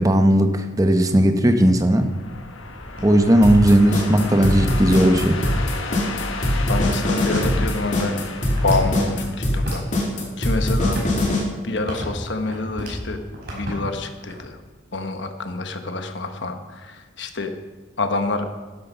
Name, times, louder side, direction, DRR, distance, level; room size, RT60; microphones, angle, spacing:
voice 1, 0.0-2.1 3.0-5.4, right 1 dB, 15° right, 7 dB, 0.8 m, -16 dB
sound 1, 1.6-10.1, left 3 dB, 80° left, 1.4 m, -33 dB
sound 2, 2.5-5.6 6.2-6.3 7.0-9.2 9.5-10.3 10.6-13.0 13.3-14.6, equal, 50° right, 5.1 m, -35 dB
sound 3, 3.4-11.4, left 1 dB, 35° left, 2.8 m, -21 dB
voice 2, 6.7-8.2 8.6-9.8 10.4-11.3 11.6-13.2 13.5-14.6 14.9-17.5 18.0-18.5, left 3 dB, 60° left, 6 dB, 1.1 m, -27 dB
12.5 x 11.5 x 5.5 m, 1.4 s
head